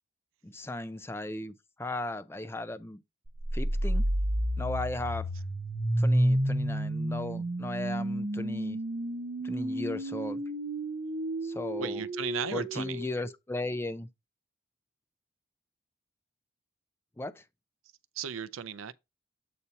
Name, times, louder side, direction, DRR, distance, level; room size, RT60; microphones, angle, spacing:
voice 1, 0.4-3.0 3.5-4.0 4.6-5.3 6.0-8.8 9.4-10.4 11.4-12.0 12.5-14.1 17.2-17.4, left 2 dB, 10° left, 0.4 m, -36 dB
sound 1, 3.3-13.3, right 1 dB, 45° right, 0.8 m, -31 dB
voice 2, 11.8-13.0 18.2-18.9, right 7 dB, 85° right, 0.5 m, -35 dB
8.0 x 2.8 x 5.6 m
head